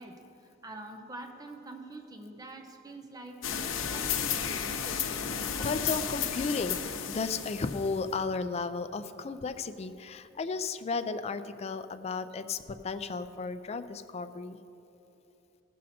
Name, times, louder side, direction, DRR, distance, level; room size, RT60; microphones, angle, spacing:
voice 1, 0.0-5.4, right 2 dB, 20° right, 4 dB, 0.6 m, -46 dB
sound 1, 3.4-8.1, left 8 dB, 85° left, 0.7 m, -33 dB
voice 2, 5.6-14.6, left 4 dB, 35° left, 11 dB, 0.4 m, -34 dB
15.0 x 6.5 x 4.2 m, 2.9 s
head